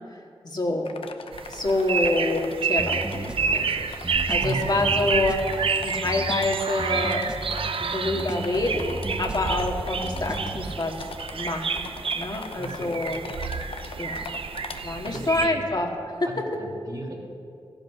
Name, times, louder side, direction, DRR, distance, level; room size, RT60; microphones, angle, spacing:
voice 1, 0.4-1.0 1.5-4.0 4.3-7.2 7.8-10.9 11.3-11.8 12.1-13.2 14.0-14.3 14.8-16.1, left 2 dB, 50° left, 1 dB, 2.0 m, -27 dB
sound 1, 0.8-2.6 2.9-3.3 3.6-3.7 3.9-7.9 8.2-15.2, left 5 dB, 75° left, 0.8 m, -41 dB
sound 2, 1.3-15.5, right 5 dB, 75° right, 0.7 m, -29 dB
sound 3, 2.8-10.8, right 1 dB, 10° right, 1.4 m, -35 dB
voice 2, 4.4-5.0 12.6-13.0 15.0-15.6 16.2-17.2, right 2 dB, 45° right, -1 dB, 3.3 m, -35 dB
14.0 x 11.0 x 6.7 m, 2.5 s
cardioid pair, 40°, 9 cm